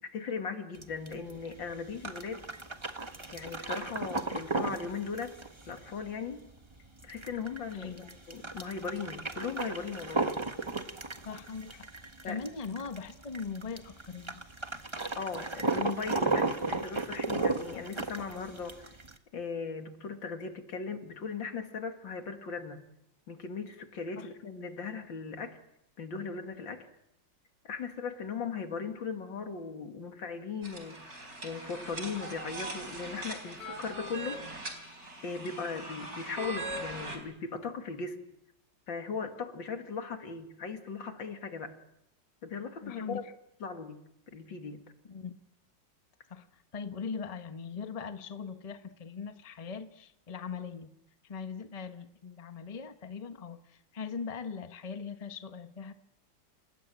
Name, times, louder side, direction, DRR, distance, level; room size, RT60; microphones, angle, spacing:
voice 1, 0.0-2.4 3.3-5.3 5.7-6.4 7.0-10.3 12.2-12.4 15.2-18.9 19.3-22.8 23.3-25.6 26.0-26.9 27.6-34.7 35.2-38.2 38.9-41.8 42.4-43.2 43.6-44.9, left 5 dB, 80° left, 6 dB, 3.0 m, -38 dB
sound 1, 0.7-19.2, right 3 dB, 15° right, 1.2 m, -35 dB
voice 2, 7.7-8.1 11.2-14.4 24.2-24.3 42.8-43.3 45.1-45.3 46.3-46.5 46.7-50.9 51.2-55.9, left 5 dB, 25° left, 9 dB, 1.0 m, -40 dB
sound 2, 30.6-37.2, right 1 dB, 50° right, 4.5 m, -41 dB
28.5 x 19.5 x 9.2 m, 0.79 s
omnidirectional pair, 2.1 m